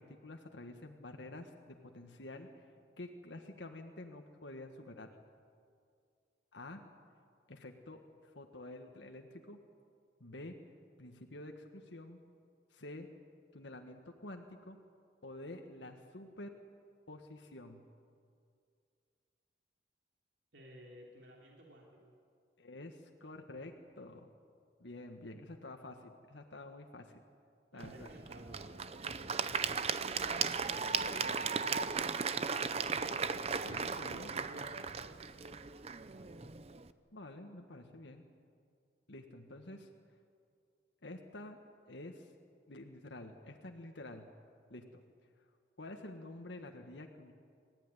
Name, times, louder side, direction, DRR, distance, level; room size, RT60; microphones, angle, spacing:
voice 1, 0.0-2.7 3.0-5.1 6.5-6.8 7.5-9.6 10.2-10.5 11.0-12.2 12.7-13.1 13.5-14.8 15.2-16.5 17.1-17.8 22.6-24.3 24.8-27.2 27.7-28.1 33.6-34.3 37.1-38.3 39.1-39.9 41.0-41.6 41.9-42.3 42.7-44.3 44.7-45.0 45.8-47.3, left 2 dB, 80° left, 4 dB, 1.6 m, -49 dB
voice 2, 20.5-22.1 27.7-30.5 30.9-32.8 34.0-35.5, right 1 dB, 80° right, -2 dB, 3.1 m, -56 dB
Applause / Crowd, 27.8-36.9, right 5 dB, 35° right, 0.7 m, -36 dB
28.0 x 14.5 x 9.8 m, 2.3 s
head